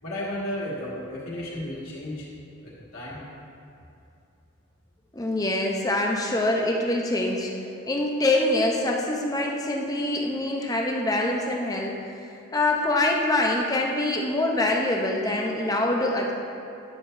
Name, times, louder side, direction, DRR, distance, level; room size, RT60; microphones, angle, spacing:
voice 1, 0.0-2.3 2.6-3.2, left 1 dB, 85° left, -8 dB, 1.7 m, -33 dB
voice 2, 5.1-7.5 7.9-12.0 12.5-16.3, left 1 dB, 15° left, 0 dB, 0.6 m, -24 dB
9.7 x 6.7 x 2.6 m, 2.7 s
head